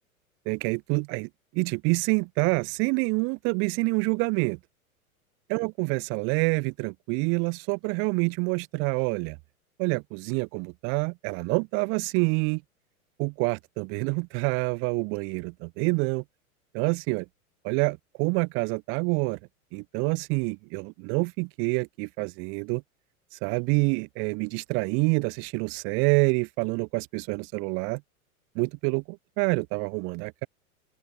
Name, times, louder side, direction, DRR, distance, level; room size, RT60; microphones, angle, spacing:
voice 1, 0.5-4.6 5.5-9.4 9.8-12.6 13.2-16.2 16.7-17.3 17.6-19.4 19.7-22.8 23.4-28.0 28.5-30.5, right 34 dB, 30° right, 0.8 m, -27 dB
open air
figure-of-eight pair, 95°, 43 cm